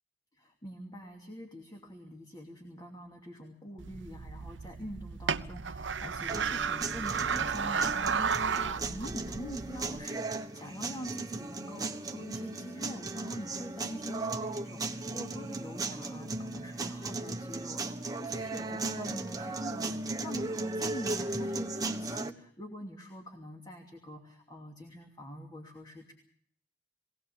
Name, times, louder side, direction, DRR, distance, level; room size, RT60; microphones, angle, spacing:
voice 1, 0.3-26.1, equal, 25° left, 1 dB, 2.8 m, -44 dB
sound 1, 3.8-10.0, right 6 dB, 80° right, 0.8 m, -33 dB
sound 2, 6.3-22.3, right 2 dB, 20° right, 1.4 m, -36 dB
22.0 x 17.5 x 7.0 m, 0.62 s
head